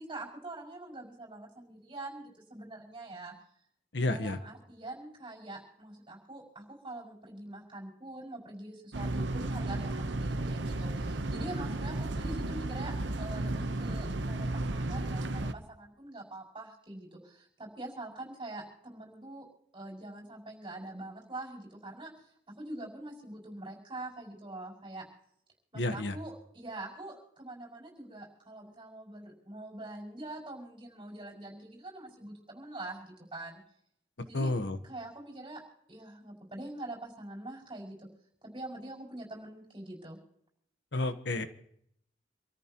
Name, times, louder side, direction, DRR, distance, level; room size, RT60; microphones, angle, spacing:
voice 1, 0.0-3.3 4.0-19.4 19.7-22.3 22.6-25.1 25.7-33.6 34.3-34.5 34.8-35.6 35.9-38.1 38.4-40.2, right 2 dB, 30° right, -3 dB, 5.8 m, -44 dB
voice 2, 3.9-4.4 25.7-26.2 34.3-34.8 40.9-41.5, left 2 dB, 70° left, 9 dB, 1.2 m, -30 dB
sound 1, 8.9-15.5, right 2 dB, 75° right, 1.0 m, -33 dB
27.0 x 14.0 x 3.0 m, 0.68 s
head